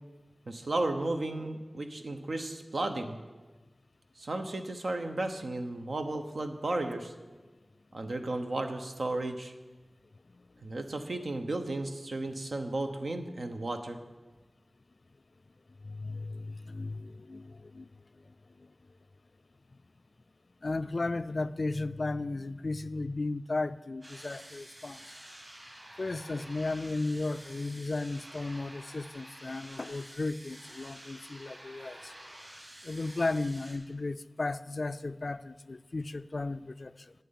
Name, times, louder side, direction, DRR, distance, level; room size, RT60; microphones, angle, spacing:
voice 1, 0.5-3.2 4.2-7.1 7.9-9.5 10.6-14.0, right 2 dB, 75° right, 1.0 m, -34 dB
voice 2, 15.8-18.0 18.6-18.7 20.6-25.0 26.0-32.1 32.8-37.1, left 2 dB, 60° left, 0.3 m, -35 dB
sound 1, 24.0-33.7, right 1 dB, 40° right, 4.0 m, -50 dB
9.2 x 6.7 x 8.6 m
wide cardioid pair, 60°, 0 cm